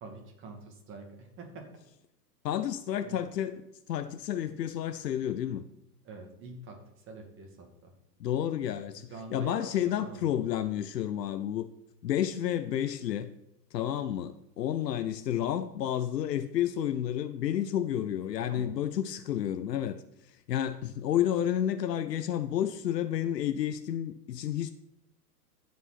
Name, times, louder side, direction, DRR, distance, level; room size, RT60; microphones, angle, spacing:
voice 1, 0.0-1.8 3.0-3.2 6.0-7.9 8.7-10.3 18.4-18.7, right 3 dB, 25° right, 2.4 m, -46 dB
voice 2, 2.4-3.6 3.9-5.6 8.2-11.7 12.0-13.3 13.7-20.0 20.5-24.7, left 10 dB, 75° left, 0.8 m, -30 dB
16.0 x 5.3 x 4.3 m
hypercardioid pair, 125°, 49 cm